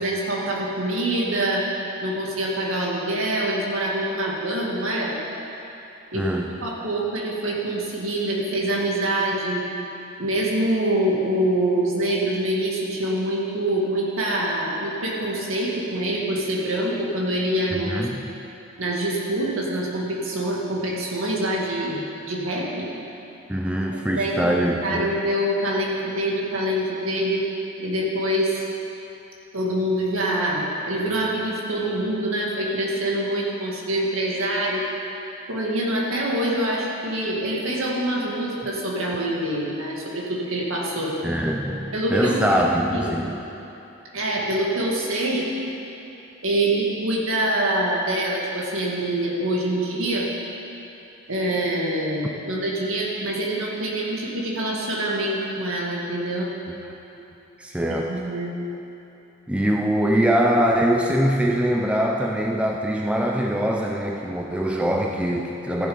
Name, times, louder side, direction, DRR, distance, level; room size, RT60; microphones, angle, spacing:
voice 1, 0.0-1.7 2.0-5.2 6.1-9.6 10.2-17.9 18.8-22.9 24.1-27.4 27.8-28.6 29.5-34.8 35.5-41.1 41.9-42.4 42.8-43.2 44.1-45.5 46.4-50.3 51.3-56.5 58.0-58.5, right 1 dB, 70° right, -3 dB, 2.1 m, -25 dB
voice 2, 6.1-6.5 17.7-18.2 23.5-25.1 41.2-43.4 57.2-57.3 57.6-58.2 59.5-65.9, equal, 5° right, 0 dB, 0.5 m, -23 dB
14.5 x 7.3 x 5.5 m, 2.9 s
head